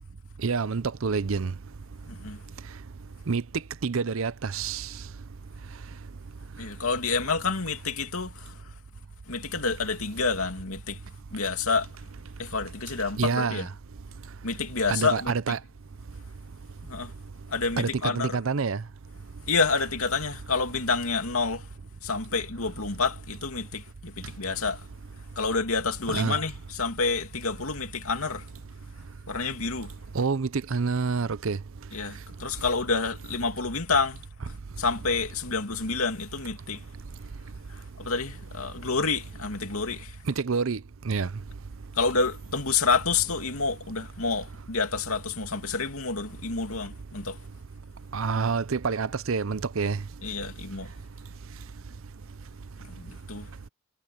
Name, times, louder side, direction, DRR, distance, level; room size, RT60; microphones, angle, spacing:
voice 1, 0.4-1.5 3.3-3.4 3.8-4.9 13.2-13.7 14.9-15.6 17.8-18.8 26.1-26.4 30.1-31.6 40.4-40.8 41.1-41.3 48.1-50.0, right 5 dB, 70° right, 0.6 m, -27 dB
voice 2, 2.1-2.4 6.6-8.7 9.3-11.0 11.3-11.9 12.4-13.7 14.4-15.3 16.8-17.1 17.5-18.4 19.5-21.7 22.0-24.9 25.4-28.5 29.3-29.9 31.9-34.3 34.8-36.8 37.7-40.2 41.9-47.4 50.2-50.9 52.8-53.5, left 4 dB, 80° left, 2.7 m, -29 dB
head